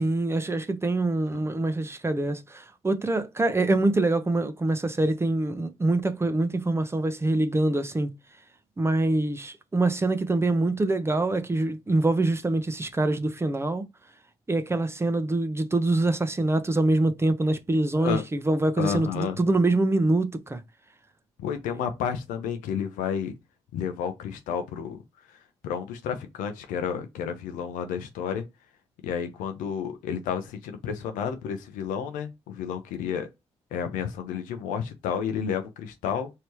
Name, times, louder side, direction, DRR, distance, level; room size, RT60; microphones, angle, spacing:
voice 1, 0.0-8.1 8.8-13.9 14.5-20.6, right 2 dB, 20° right, 0.6 m, -25 dB
voice 2, 18.8-19.4 21.4-23.4 23.7-25.0 25.3-25.4 25.6-28.5 29.0-33.3 33.7-36.3, left 7 dB, 80° left, 0.7 m, -31 dB
3.3 x 2.7 x 3.0 m
supercardioid pair, 55°, 13 cm